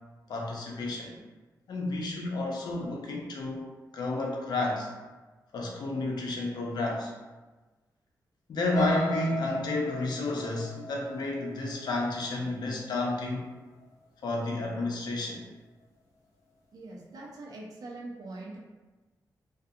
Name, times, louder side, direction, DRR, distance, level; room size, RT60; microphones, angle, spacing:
voice 1, 0.3-1.2 1.7-4.9 5.5-7.1 8.5-13.5 14.2-15.5, left 2 dB, 80° left, -1 dB, 0.5 m, -31 dB
sound 1, 8.7-12.7 13.2-13.5 13.8-13.9, left 3 dB, 55° left, 1.1 m, -36 dB
voice 2, 16.7-18.6, right 2 dB, 65° right, -3 dB, 0.6 m, -42 dB
2.4 x 2.3 x 2.7 m, 1.2 s
wide cardioid pair, 115°, 7 cm